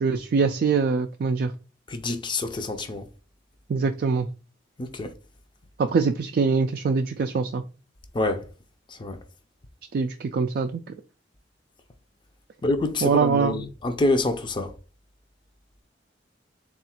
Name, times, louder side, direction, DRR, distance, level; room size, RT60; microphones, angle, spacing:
voice 1, 0.0-1.5 3.7-4.3 5.8-7.6 9.9-10.8 13.0-13.5, right 5 dB, 55° right, 0.3 m, -23 dB
voice 2, 1.9-3.0 4.8-5.1 8.1-8.4 9.0-9.2 12.6-14.7, left 2 dB, 25° left, 0.5 m, -26 dB
3.7 x 2.4 x 4.2 m
head